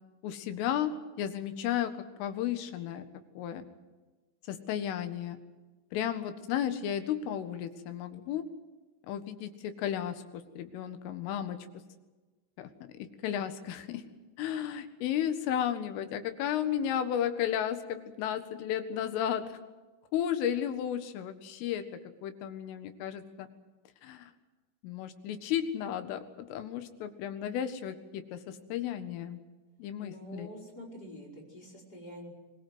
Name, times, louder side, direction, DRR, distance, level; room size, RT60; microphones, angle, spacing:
voice 1, 0.2-1.9 2.2-3.1 3.4-3.7 4.5-5.4 5.9-8.5 9.1-11.6 12.6-12.7 13.0-14.0 14.4-19.6 20.1-21.8 22.2-23.5 24.0-24.3 24.8-29.4 29.8-30.5, left 10 dB, 85° left, 9 dB, 4.2 m, -33 dB
voice 2, 30.0-32.3, equal, 20° left, 1 dB, 5.2 m, -46 dB
24.0 x 21.0 x 8.0 m, 1.2 s
omnidirectional pair, 5.6 m